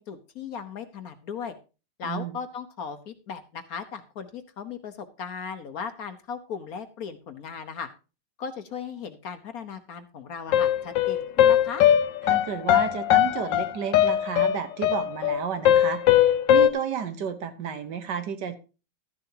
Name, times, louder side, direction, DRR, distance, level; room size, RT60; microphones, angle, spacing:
voice 1, 0.0-1.5 2.0-7.9 8.4-11.8, left 6 dB, 60° left, 9 dB, 1.2 m, -37 dB
voice 2, 2.0-2.4 12.3-18.5, right 7 dB, 65° right, 10 dB, 1.6 m, -32 dB
sound 1, 10.5-16.7, left 11 dB, 75° left, 1.4 m, -20 dB
13.0 x 10.5 x 2.8 m, 0.32 s
omnidirectional pair, 2.0 m